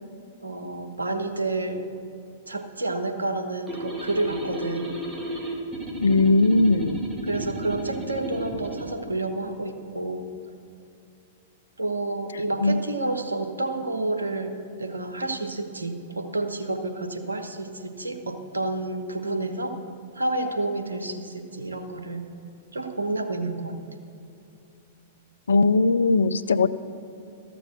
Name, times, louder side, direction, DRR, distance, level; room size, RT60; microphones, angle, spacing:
voice 1, 0.4-1.8 2.5-4.9 7.2-10.3 11.8-19.8 20.1-22.2 22.7-23.7, right 2 dB, 85° right, 6 dB, 1.1 m, -29 dB
sound 1, 3.7-8.9, equal, 15° right, 2.3 m, -33 dB
voice 2, 6.0-7.0 12.6-12.8 25.5-26.7, left 3 dB, 75° left, 15 dB, 0.4 m, -19 dB
13.5 x 6.8 x 6.4 m, 2.6 s
figure-of-eight pair, 105°, 0 cm